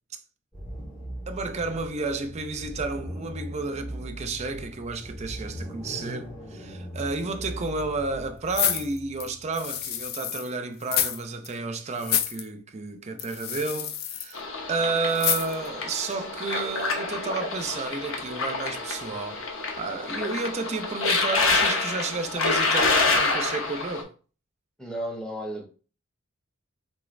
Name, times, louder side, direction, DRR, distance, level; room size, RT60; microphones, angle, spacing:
sound 1, 0.5-9.9, right 1 dB, 20° left, 1.3 m, -39 dB
voice 1, 1.3-19.4 19.8-24.1, right 3 dB, 30° right, 0.4 m, -31 dB
sound 2, 8.5-10.5 10.8-11.2 11.4-11.5 12.0-12.4 13.2-14.3 15.2-15.7 16.1-16.2, left 10 dB, 45° left, 0.4 m, -28 dB
sound 3, 14.3-24.0, left 3 dB, 65° left, 0.8 m, -27 dB
voice 2, 24.8-25.7, right 1 dB, 5° left, 0.7 m, -33 dB
3.7 x 3.0 x 2.5 m
head